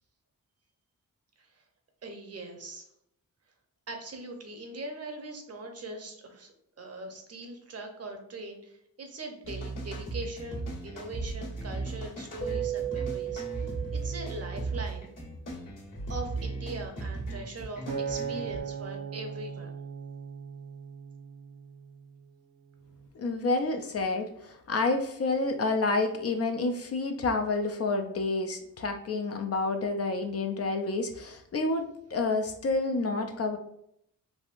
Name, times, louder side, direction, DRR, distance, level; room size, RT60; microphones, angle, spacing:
voice 1, 2.0-2.9 3.9-15.1 16.1-19.7, right 2 dB, 45° right, 4 dB, 0.7 m, -41 dB
sound 1, 9.4-18.6, right 3 dB, 60° left, 1.4 m, -36 dB
Keyboard (musical), 12.4-14.9, right 11 dB, 25° left, 0.9 m, -36 dB
Acoustic guitar, 17.9-22.2 22.8-23.1, right 6 dB, 80° right, 0.7 m, -38 dB
voice 2, 23.1-33.6, left 3 dB, 45° left, 6 dB, 0.4 m, -29 dB
3.4 x 2.4 x 2.4 m, 0.74 s
cardioid pair, 70°, 35 cm